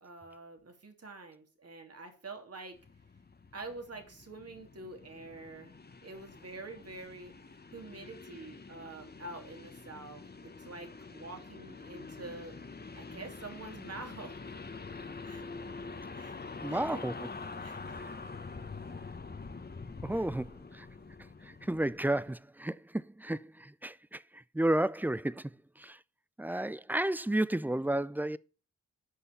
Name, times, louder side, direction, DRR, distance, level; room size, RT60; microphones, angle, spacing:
voice 1, 0.0-2.8 3.5-5.7 6.0-7.3 7.7-12.6 13.0-14.3 15.2-15.5 16.1-16.4 16.7-16.8 17.6-18.0 20.1-20.3 26.5-26.7, right 3 dB, 45° right, 2.8 m, -46 dB
sound 1, 2.7-22.3, left 4 dB, 30° left, 1.2 m, -46 dB
voice 2, 16.6-17.3 18.0-18.1 20.0-20.9 21.4-26.0 26.4-28.4, right 1 dB, 5° right, 0.4 m, -32 dB
8.3 x 5.5 x 6.8 m
supercardioid pair, 45°, 33 cm